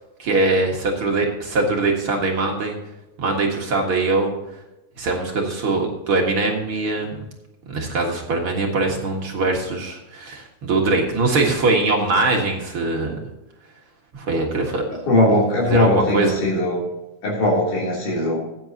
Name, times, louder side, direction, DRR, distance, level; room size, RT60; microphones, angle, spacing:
voice 1, 0.2-2.8 3.2-4.3 5.0-7.2 7.7-13.1 14.1-14.8 15.7-16.4, right 3 dB, 50° right, 0 dB, 2.2 m, -22 dB
voice 2, 15.1-16.8 17.2-18.4, left 1 dB, 70° left, -5 dB, 4.6 m, -19 dB
15.5 x 9.3 x 2.8 m, 0.97 s
omnidirectional pair, 3.7 m